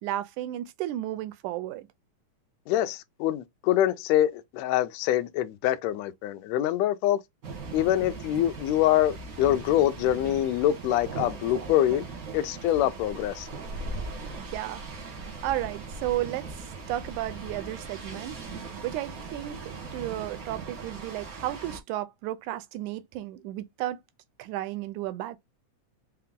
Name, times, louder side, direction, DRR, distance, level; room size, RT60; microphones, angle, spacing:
voice 1, 0.0-1.9 14.4-14.8 15.4-18.4 18.8-24.0 24.4-25.4, right 14 dB, 80° right, 1.9 m, -33 dB
voice 2, 2.7-7.2 7.7-12.0 12.3-13.5, left 12 dB, 85° left, 1.5 m, -25 dB
sound 1, 7.4-21.8, right 3 dB, 55° right, 1.0 m, -39 dB
5.6 x 2.1 x 3.6 m
omnidirectional pair, 3.7 m